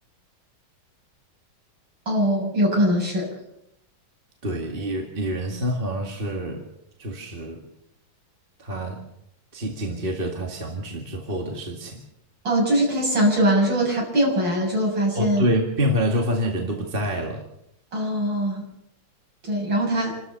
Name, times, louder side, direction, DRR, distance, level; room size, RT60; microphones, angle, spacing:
voice 1, 2.1-3.3 12.4-15.5 17.9-18.6 19.4-20.1, equal, 70° right, -2 dB, 8.2 m, -22 dB
voice 2, 4.4-6.7 7.0-7.6 8.6-9.0 9.5-12.0 15.1-17.5, equal, 30° right, 2 dB, 2.1 m, -27 dB
29.0 x 13.0 x 6.9 m, 0.80 s
omnidirectional pair, 2.1 m